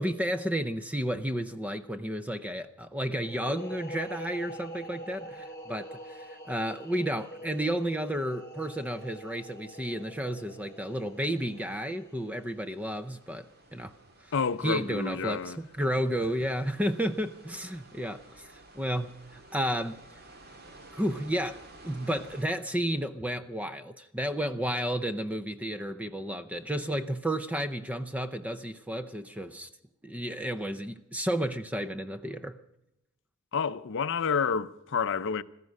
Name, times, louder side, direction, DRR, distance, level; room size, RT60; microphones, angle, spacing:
voice 1, 0.0-13.9 14.6-18.5 18.7-19.2 19.5-20.0 20.9-21.6 21.8-29.7 30.0-32.6, equal, 5° right, 0.6 m, -32 dB
sound 1, 3.2-12.7, right 1 dB, 10° left, 1.8 m, -44 dB
sound 2, 6.3-22.5, right 2 dB, 45° right, 1.9 m, -55 dB
voice 2, 14.3-15.6 33.5-35.4, left 6 dB, 55° left, 0.6 m, -29 dB
16.0 x 14.0 x 6.5 m
head